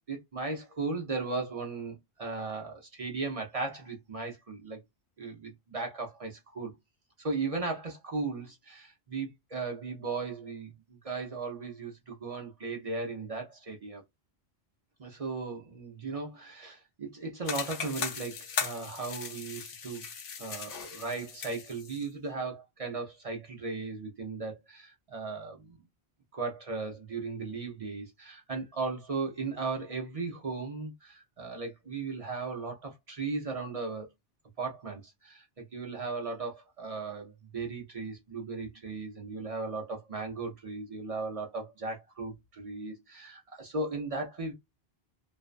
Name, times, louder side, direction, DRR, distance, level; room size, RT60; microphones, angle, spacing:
voice 1, 0.1-4.8 5.2-6.7 7.2-14.0 15.0-20.1 20.4-25.8 26.3-34.1 34.6-44.5, right 3 dB, 45° right, 0.5 m, -37 dB
sound 1, 17.5-22.1, left 6 dB, 65° left, 0.8 m, -38 dB
2.5 x 2.2 x 2.4 m
omnidirectional pair, 1.1 m